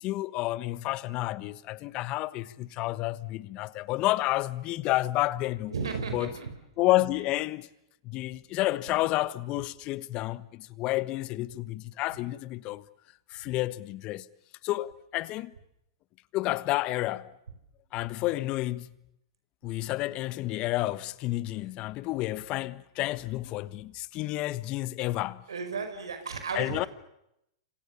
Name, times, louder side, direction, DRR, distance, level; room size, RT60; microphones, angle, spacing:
voice 1, 0.0-5.7 6.1-6.3 6.8-7.7 8.0-12.8 13.3-14.3 14.6-15.5 16.3-17.3 17.9-19.0 19.6-25.4 26.5-26.9, left 17 dB, 40° left, 1.3 m, -30 dB
voice 2, 5.7-6.5 25.5-26.9, right 5 dB, 85° right, 5.1 m, -34 dB
30.0 x 26.0 x 7.0 m
hypercardioid pair, 115°, 2 cm